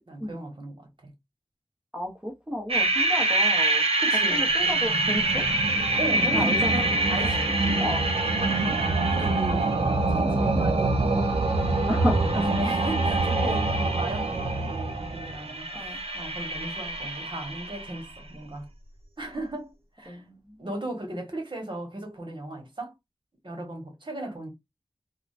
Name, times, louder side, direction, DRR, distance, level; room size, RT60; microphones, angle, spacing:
voice 1, 0.1-1.1 4.0-4.5 6.0-8.1 8.8-11.4 12.0-15.7 16.1-18.7 19.2-20.2 20.6-22.9 23.4-24.5, right 1 dB, 55° right, 1.3 m, -36 dB
voice 2, 1.9-3.8 4.3-5.4 6.3-6.7 7.4-8.0 11.9-12.4 15.7-16.0 20.1-20.5, equal, 10° right, 0.8 m, -32 dB
sound 1, 2.7-18.0, right 2 dB, 75° right, 0.8 m, -25 dB
3.7 x 2.1 x 2.5 m
wide cardioid pair, 60°, 10 cm